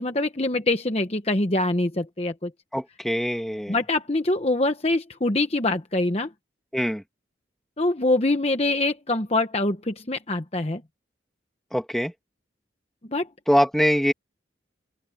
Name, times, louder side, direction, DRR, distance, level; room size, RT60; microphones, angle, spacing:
voice 1, 0.0-2.5 3.7-6.3 7.8-10.8 13.1-13.3, left 2 dB, 35° left, 1.0 m, -24 dB
voice 2, 2.7-3.8 6.7-7.0 11.7-12.1 13.5-14.1, equal, ahead, 2.6 m, -23 dB
open air
head